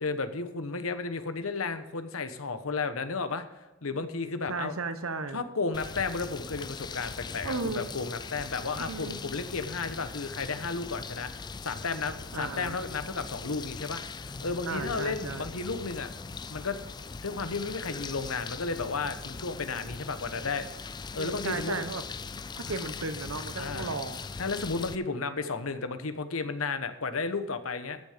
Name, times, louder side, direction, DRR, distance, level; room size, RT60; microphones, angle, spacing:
voice 1, 0.0-3.5 3.8-4.7 5.3-11.3 11.6-16.1 16.5-16.8 17.2-20.7 21.1-21.8 22.7-22.8 23.6-23.9 24.4-28.0, left 4 dB, 90° left, 10 dB, 1.1 m, -33 dB
voice 2, 3.9-5.4 7.4-7.8 8.8-9.2 12.3-12.8 14.6-15.5 21.2-22.0 22.5-24.2, right 3 dB, 80° right, 10 dB, 1.0 m, -35 dB
sound 1, 5.7-24.9, left 4 dB, 20° left, 0.3 m, -40 dB
14.0 x 6.6 x 5.1 m, 1.1 s
head